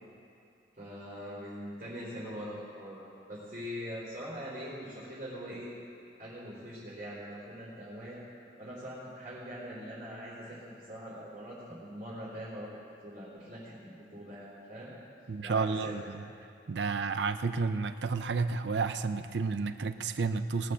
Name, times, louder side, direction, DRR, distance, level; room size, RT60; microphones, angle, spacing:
voice 1, 0.8-5.7 6.2-8.2 8.6-14.9 15.4-15.9, equal, 45° right, -8 dB, 3.8 m, -42 dB
voice 2, 15.3-16.3 16.7-20.7, right 4 dB, 70° right, 10 dB, 0.5 m, -31 dB
18.5 x 6.4 x 6.7 m, 2.6 s
head